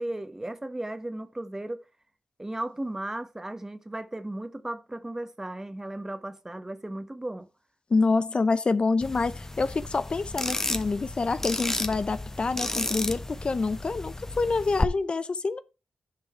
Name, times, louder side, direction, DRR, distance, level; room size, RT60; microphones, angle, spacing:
voice 1, 0.0-1.8 2.4-7.5, right 1 dB, 20° right, 1.3 m, -35 dB
voice 2, 7.9-15.6, left 3 dB, 50° left, 0.7 m, -27 dB
sound 1, 9.0-14.8, left 2 dB, 20° left, 1.3 m, -33 dB
10.0 x 5.3 x 4.5 m
supercardioid pair, 45°, 2 cm